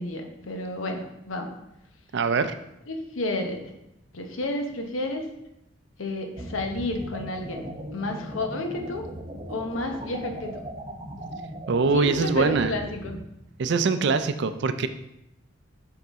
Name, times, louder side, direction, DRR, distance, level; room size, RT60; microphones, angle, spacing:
voice 1, 0.0-1.6 2.9-3.7 4.1-5.2 6.0-9.0 9.5-10.5 11.9-13.2 13.7-14.1, left 1 dB, 90° left, 4 dB, 0.8 m, -31 dB
voice 2, 2.1-2.6 11.7-12.7 13.6-14.9, right 4 dB, 60° right, 11 dB, 0.4 m, -23 dB
sound 1, 6.4-13.2, right 1 dB, 30° right, 0.7 m, -38 dB
7.0 x 3.9 x 3.5 m, 0.86 s
head